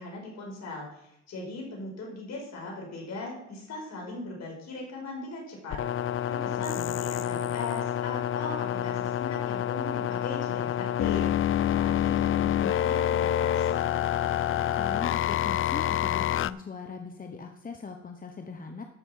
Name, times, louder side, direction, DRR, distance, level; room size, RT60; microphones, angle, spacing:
voice 1, 0.0-5.8 6.2-13.8, left 2 dB, 60° left, -1 dB, 5.2 m, -39 dB
sound 1, 5.7-16.5, left 11 dB, 45° left, 0.4 m, -27 dB
voice 2, 6.5-6.9 14.7-18.8, left 4 dB, 30° left, 5 dB, 1.1 m, -40 dB
13.0 x 6.0 x 5.7 m, 0.80 s
cardioid pair, 90°, 30 cm